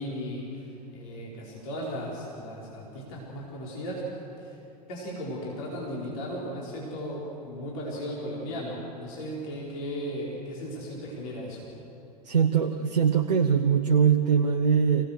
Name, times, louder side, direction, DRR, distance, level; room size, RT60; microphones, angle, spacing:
voice 1, 0.0-4.1 4.4-4.6 4.9-11.7, equal, 55° left, -4 dB, 4.9 m, -36 dB
voice 2, 12.2-15.1, right 7 dB, 80° right, 4 dB, 1.0 m, -22 dB
26.5 x 17.5 x 6.7 m, 3.0 s
figure-of-eight pair, 85°, 21 cm